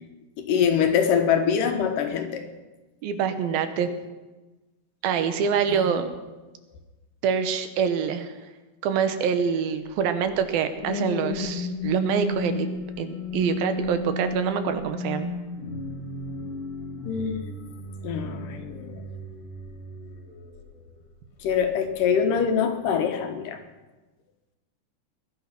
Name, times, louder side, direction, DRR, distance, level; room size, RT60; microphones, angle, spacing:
voice 1, 0.4-2.5 17.1-17.5 18.0-19.0 21.4-23.6, left 7 dB, 70° left, 6 dB, 2.5 m, -24 dB
voice 2, 3.0-3.9 5.0-6.1 7.2-8.3 8.8-12.7 13.0-15.3, right 7 dB, 75° right, 9 dB, 2.8 m, -25 dB
sound 1, 10.3-20.9 21.4-21.7, left 2 dB, 50° left, 2.5 m, -34 dB
20.0 x 11.5 x 5.8 m, 1.2 s
omnidirectional pair, 4.3 m